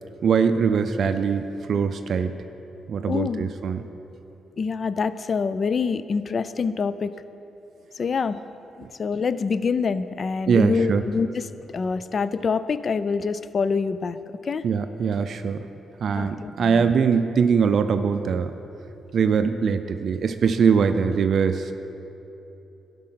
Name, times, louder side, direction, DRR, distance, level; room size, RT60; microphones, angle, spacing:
voice 1, 0.2-2.3 2.9-3.8 10.5-11.0 14.6-15.6 16.0-18.5 19.1-21.7, right 6 dB, 60° right, 9 dB, 0.4 m, -22 dB
voice 2, 3.0-3.5 4.6-7.1 8.0-8.4 8.8-14.2 14.4-14.7 16.1-16.9, left 5 dB, 45° left, 14 dB, 0.3 m, -26 dB
11.5 x 5.4 x 5.7 m, 3.0 s
cardioid pair, 85°, 0 cm